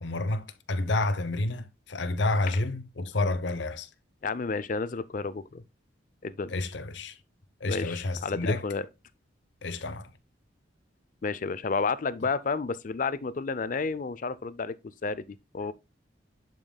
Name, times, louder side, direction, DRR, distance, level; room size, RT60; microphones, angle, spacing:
voice 1, 0.0-3.9 6.5-7.1 7.6-8.6 9.6-10.1, left 2 dB, 75° left, 0.8 m, -29 dB
voice 2, 4.2-5.6 6.2-6.5 7.7-8.9 11.2-14.8 15.0-15.2 15.5-15.7, left 4 dB, 45° left, 0.5 m, -31 dB
10.5 x 5.3 x 2.2 m
head